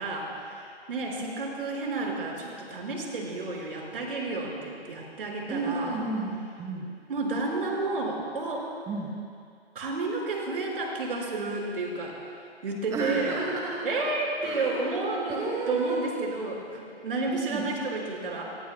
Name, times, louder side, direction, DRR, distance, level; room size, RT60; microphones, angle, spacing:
voice 1, 0.0-6.0 7.1-8.7 9.8-12.3 12.6-13.4 13.8-18.4, right 3 dB, 55° right, -1 dB, 5.2 m, -31 dB
voice 2, 5.5-6.3 6.6-6.9 8.9-9.1 12.9-13.8 14.4-14.8 15.3-16.1 17.3-17.6, right 3 dB, 10° right, -3 dB, 1.2 m, -31 dB
26.5 x 22.5 x 2.2 m, 2.3 s
figure-of-eight pair, 130°, 33 cm